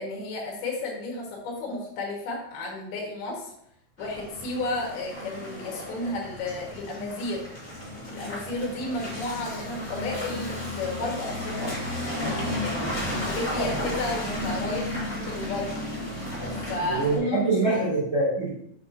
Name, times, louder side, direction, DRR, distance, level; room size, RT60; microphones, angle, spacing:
voice 1, 0.0-3.5 4.0-7.5 8.1-11.8 12.6-15.7 16.7-17.8, left 2 dB, 85° left, -1 dB, 3.4 m, -32 dB
Car passing by / Engine, 4.0-17.2, left 1 dB, 20° left, 2.1 m, -33 dB
voice 2, 16.6-18.5, right 2 dB, 20° right, -9 dB, 2.8 m, -25 dB
7.9 x 5.8 x 2.8 m, 0.71 s
omnidirectional pair, 4.4 m